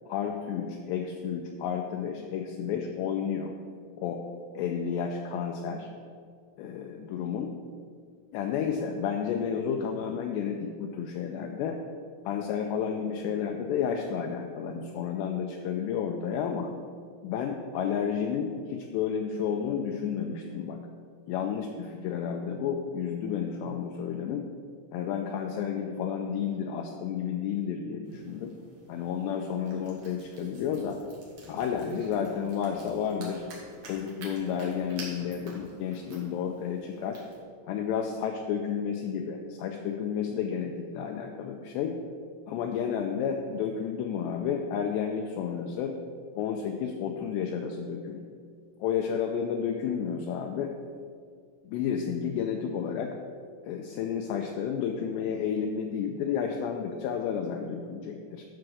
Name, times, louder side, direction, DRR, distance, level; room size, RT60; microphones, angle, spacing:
voice 1, 0.1-3.5 4.0-4.2 4.5-5.9 6.6-7.5 8.3-11.8 12.3-16.7 17.2-20.8 21.3-24.5 24.9-28.5 28.9-31.0 31.5-33.5 33.9-37.2 37.7-42.0 42.5-45.9 46.4-48.2 48.8-50.7 51.6-53.1 53.6-58.4, left 7 dB, 85° left, 3 dB, 2.5 m, -31 dB
sound 1, 28.0-37.4, right 2 dB, 50° right, 2.8 m, -50 dB
12.5 x 4.7 x 6.3 m, 2.1 s
omnidirectional pair, 5.6 m